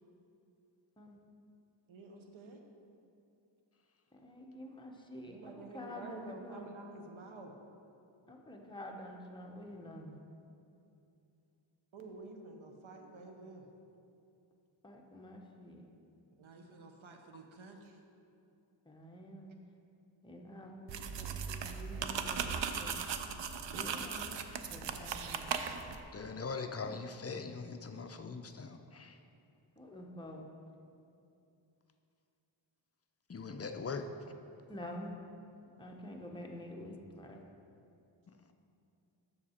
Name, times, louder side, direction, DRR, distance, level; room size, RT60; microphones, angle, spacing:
voice 1, 1.9-2.6 5.3-7.5 11.9-13.7 16.3-18.0 27.9-28.0, right 3 dB, 85° right, 3 dB, 0.9 m, -50 dB
voice 2, 4.1-6.7 8.3-10.2 14.8-15.9 18.9-19.5 20.2-23.0 23.6-24.4 24.7-25.5 29.8-30.5 34.7-35.2 35.8-37.4, left 1 dB, 10° left, 0 dB, 0.7 m, -48 dB
sound 1, 20.9-26.0, right 6 dB, 70° right, 0.5 m, -38 dB
voice 3, 26.1-29.2 33.3-34.1, left 4 dB, 35° left, 7 dB, 0.4 m, -41 dB
7.3 x 6.4 x 4.3 m, 2.6 s
wide cardioid pair, 110°, 47 cm